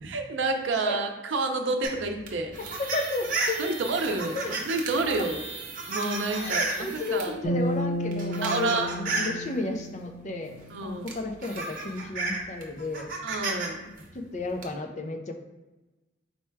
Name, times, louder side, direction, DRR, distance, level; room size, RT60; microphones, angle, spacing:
voice 1, 0.0-2.6 3.6-5.4 5.9-7.3 8.4-8.9 10.7-11.1 13.2-13.9, right 3 dB, 90° right, 5 dB, 0.5 m, -29 dB
sound 1, 1.8-7.3 8.0-9.4 10.6-10.7 11.1-13.7 14.0-14.6, right 3 dB, 45° right, 0.7 m, -33 dB
voice 2, 2.8-3.6 3.9-4.0 4.3-4.5 5.1-5.3 6.4-13.1 14.1-15.3, left 2 dB, 40° left, 5 dB, 0.4 m, -33 dB
sound 2, 7.4-10.8, equal, 65° left, 0.8 m, -32 dB
4.2 x 2.2 x 4.5 m, 1.1 s
head